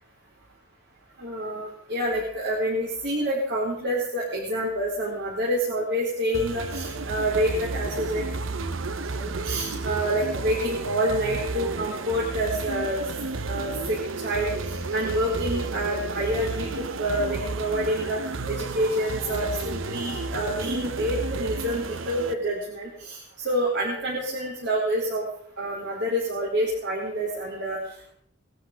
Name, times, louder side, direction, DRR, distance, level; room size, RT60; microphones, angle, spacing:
voice 1, 1.2-8.3 9.1-13.1 13.5-18.2 18.5-25.2 25.6-27.8, right 1 dB, 65° right, -5 dB, 4.5 m, -27 dB
sound 1, 6.3-22.3, right 3 dB, 85° right, 1.0 m, -32 dB
21.0 x 12.0 x 5.1 m, 0.65 s
head